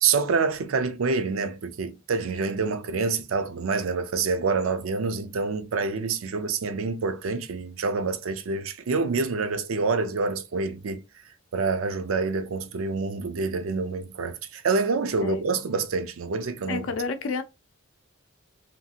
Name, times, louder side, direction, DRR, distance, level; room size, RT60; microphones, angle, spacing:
voice 1, 0.0-11.0 11.5-16.9, right 4 dB, 85° right, 0.4 m, -27 dB
voice 2, 16.7-17.4, left 4 dB, 75° left, 0.5 m, -29 dB
2.7 x 2.4 x 2.7 m
head